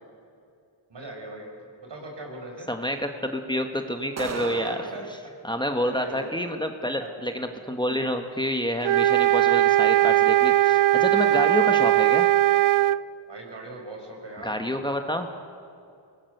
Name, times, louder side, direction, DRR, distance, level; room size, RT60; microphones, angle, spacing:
voice 1, 0.9-1.5 1.8-2.7 4.6-5.3 5.8-6.3 7.0-7.1 9.4-9.5 11.1-11.6 13.3-14.6, right 2 dB, 60° right, 1 dB, 5.8 m, -40 dB
voice 2, 2.7-4.9 5.4-12.3 14.4-15.3, equal, 10° left, 5 dB, 1.4 m, -28 dB
sound 1, 4.2-5.2, right 6 dB, 35° right, 0.7 m, -34 dB
sound 2, 8.8-13.0, right 14 dB, 80° right, 0.6 m, -19 dB
24.5 x 20.0 x 6.7 m, 2.5 s
wide cardioid pair, 85°, 47 cm